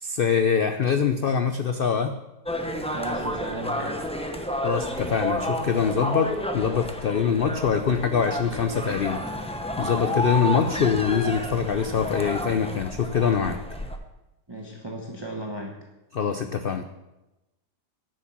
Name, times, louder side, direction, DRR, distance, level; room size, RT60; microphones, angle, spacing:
voice 1, 0.0-2.1 4.6-9.2 9.8-13.6 16.1-16.8, left 6 dB, 85° left, 7 dB, 0.5 m, -24 dB
sound 1, 2.5-14.0, equal, 5° left, 0.5 m, -30 dB
voice 2, 2.9-4.0 14.5-15.8, right 1 dB, 15° right, 0 dB, 1.1 m, -35 dB
10.5 x 7.3 x 7.1 m, 1.0 s
omnidirectional pair, 1.8 m